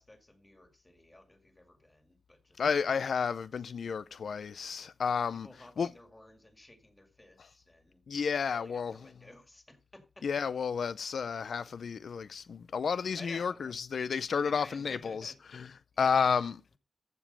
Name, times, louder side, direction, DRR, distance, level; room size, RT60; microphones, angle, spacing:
voice 1, 0.0-2.9 5.3-8.0 8.4-10.3 13.2-13.9 14.3-15.4 15.9-16.2, left 1 dB, 15° left, 2.1 m, -54 dB
voice 2, 2.6-5.5 5.8-5.9 8.1-9.1 10.2-15.7 16.0-16.5, left 6 dB, 85° left, 0.4 m, -31 dB
14.5 x 5.1 x 5.4 m
wide cardioid pair, 150°, 0 cm